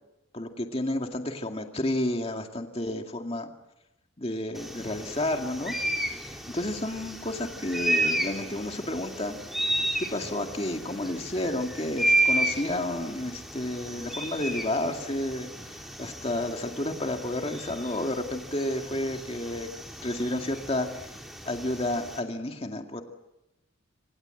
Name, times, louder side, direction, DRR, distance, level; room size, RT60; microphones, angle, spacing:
voice 1, 0.3-3.5 4.2-5.7 6.5-9.3 10.0-19.7 20.0-21.0 21.5-23.0, left 1 dB, 30° left, 4 dB, 2.2 m, -31 dB
sound 1, 4.5-22.2, right 1 dB, ahead, 3.6 m, -32 dB
27.0 x 27.0 x 7.9 m, 0.92 s
head